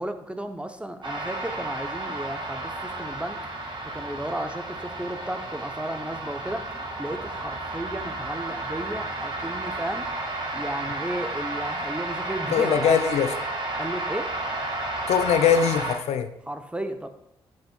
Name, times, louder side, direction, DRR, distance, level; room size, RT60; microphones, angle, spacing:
voice 1, 0.0-3.4 3.9-6.6 7.0-10.1 10.5-13.0 13.8-14.3 16.5-17.1, right 1 dB, 10° right, 7 dB, 0.9 m, -34 dB
sound 1, 1.0-16.0, right 2 dB, 45° right, 1.9 m, -32 dB
voice 2, 12.5-13.3 15.1-16.3, left 8 dB, 70° left, 8 dB, 0.5 m, -21 dB
7.8 x 7.2 x 2.4 m, 0.83 s
hypercardioid pair, 40°, 11 cm